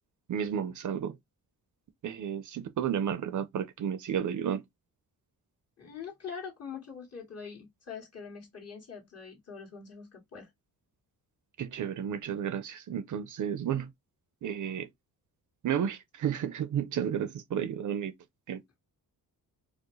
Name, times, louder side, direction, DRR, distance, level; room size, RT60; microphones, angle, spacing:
voice 1, 0.3-1.2 2.0-4.6 11.6-13.9 14.4-14.9 15.6-18.1 18.5-18.6, right 8 dB, 60° right, 0.6 m, -32 dB
voice 2, 5.8-10.5, left 6 dB, 45° left, 1.8 m, -43 dB
4.7 x 2.1 x 3.0 m
wide cardioid pair, 150°, 35 cm